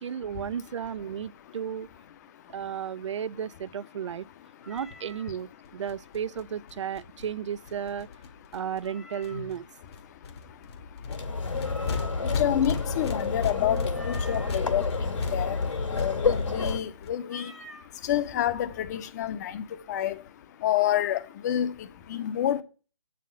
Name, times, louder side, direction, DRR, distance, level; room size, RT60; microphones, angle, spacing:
voice 1, 0.0-1.9 2.5-4.2 4.7-8.1 8.5-9.7, right 8 dB, 65° right, 0.4 m, -34 dB
voice 2, 2.2-3.1 4.4-4.8 8.5-8.6 9.3-9.5 9.8-22.6, left 11 dB, 35° left, 0.7 m, -30 dB
Meow, 4.6-5.4 8.8-9.6 11.6-12.4 13.9-14.6 17.2-17.9, equal, ahead, 0.6 m, -47 dB
sound 1, 4.8-4.9 5.1-5.2 5.4-5.5 5.7-8.9 9.2-9.6 9.9-17.1, left 4 dB, 55° left, 1.2 m, -36 dB
sound 2, 11.1-16.8, left 4 dB, 75° left, 2.1 m, -29 dB
7.2 x 4.2 x 6.1 m
figure-of-eight pair, 140°, 16 cm